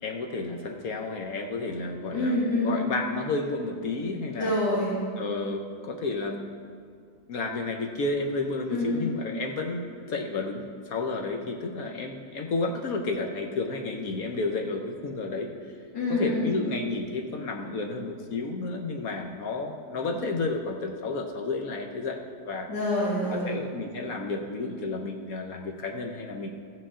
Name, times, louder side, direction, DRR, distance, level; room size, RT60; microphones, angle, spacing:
voice 1, 0.0-4.5 5.2-6.6 7.3-15.7 16.1-22.2 22.4-22.7 23.3-26.5, left 3 dB, 60° left, 2 dB, 1.2 m, -31 dB
voice 2, 2.1-2.8 4.4-4.9 8.7-9.0 15.9-16.5 22.7-23.5, left 1 dB, 90° left, -9 dB, 2.8 m, -26 dB
15.0 x 7.9 x 3.7 m, 2.1 s
omnidirectional pair, 1.8 m